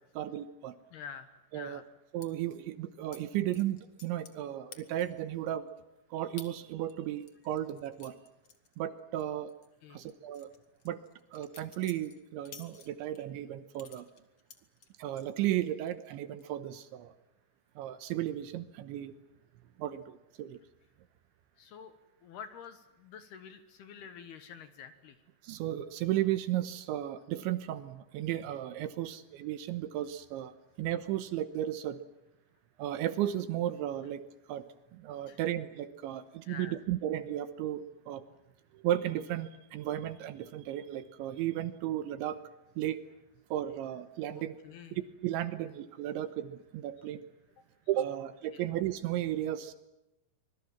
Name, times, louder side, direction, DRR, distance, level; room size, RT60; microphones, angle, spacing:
voice 1, 0.1-0.8 1.5-1.8 2.1-5.7 6.1-8.2 8.8-9.5 9.9-10.5 10.9-11.0 11.3-14.1 15.0-17.1 17.8-19.1 19.8-20.6 25.4-32.0 32.8-34.7 34.9-38.2 38.7-42.4 42.8-43.0 43.5-44.6 44.9-47.2 47.9-49.7, right 12 dB, 75° right, 13 dB, 3.1 m, -34 dB
voice 2, 0.9-1.8 9.8-10.1 21.6-21.9 22.2-25.2 35.3-35.4 36.4-36.8 44.3-45.0 48.5-48.7, left 7 dB, 65° left, 11 dB, 2.8 m, -48 dB
sound 1, 2.2-2.3 3.1-3.2 3.5-4.4 4.7-5.2 5.7-5.8 6.4-6.5 6.9-9.2 9.5-9.7 10.1-13.2 13.7-15.3 15.7-16.1 16.4-16.8, left 6 dB, 45° left, 1.9 m, -53 dB
25.5 x 23.5 x 7.3 m, 0.93 s
omnidirectional pair, 5.9 m